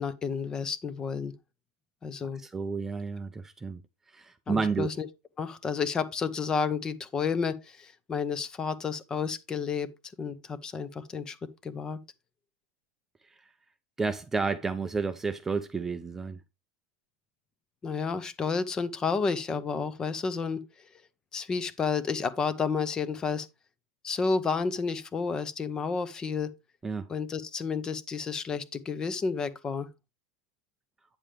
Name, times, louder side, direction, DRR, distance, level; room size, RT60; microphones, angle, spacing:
voice 1, 0.0-1.3 2.0-2.4 4.5-5.1 5.4-9.9 10.2-11.4 11.6-12.0 17.8-20.6 21.3-23.5 24.0-26.5 27.1-29.9, left 5 dB, 20° left, 0.8 m, -31 dB
voice 2, 2.4-3.8 4.1-4.9 14.0-16.4 26.8-27.1, right 4 dB, 10° right, 0.5 m, -31 dB
8.9 x 7.2 x 3.3 m
supercardioid pair, 155°, 4 cm